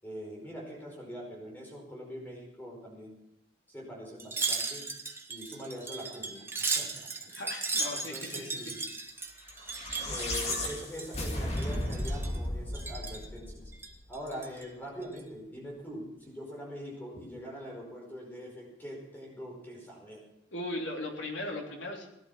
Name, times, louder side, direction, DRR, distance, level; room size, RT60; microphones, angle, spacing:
voice 1, 0.0-3.1 3.7-4.9 5.3-7.1 7.9-8.8 10.1-13.7 14.1-20.2, equal, 10° left, -1 dB, 5.0 m, -43 dB
Wind chime, 4.2-11.3 11.6-12.4 12.7-13.3 13.7-14.6 15.0-15.2, right 4 dB, 10° right, 1.2 m, -36 dB
voice 2, 7.3-8.5 20.5-22.1, left 1 dB, 75° left, 0 dB, 3.4 m, -38 dB
sound 1, 9.6-14.0, left 1 dB, 35° left, 2.5 m, -34 dB
17.5 x 11.5 x 5.7 m, 0.86 s
head